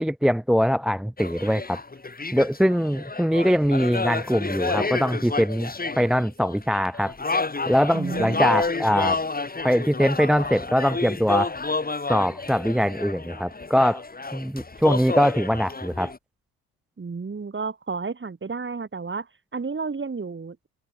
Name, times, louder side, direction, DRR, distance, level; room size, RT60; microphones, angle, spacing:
voice 1, 0.0-1.8 2.3-5.7 6.0-7.1 7.7-9.2 9.6-11.5 12.1-14.0 14.3-16.1, equal, ahead, 0.3 m, -22 dB
sound 1, 1.2-16.2, left 3 dB, 20° left, 2.5 m, -30 dB
voice 2, 7.9-8.7 17.0-20.7, right 4 dB, 25° right, 2.3 m, -32 dB
hypercardioid pair, 55°, 47 cm